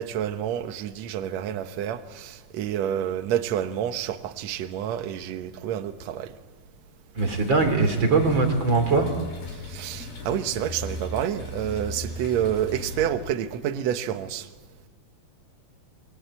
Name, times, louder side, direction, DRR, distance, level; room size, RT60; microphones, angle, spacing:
voice 1, 0.0-6.4 9.5-14.5, right 10 dB, 65° right, 1.9 m, -29 dB
voice 2, 7.1-9.1, right 3 dB, 35° right, 3.1 m, -21 dB
sound 1, 7.2-13.1, left 1 dB, 80° left, 5.8 m, -37 dB
28.5 x 23.5 x 8.6 m
omnidirectional pair, 4.3 m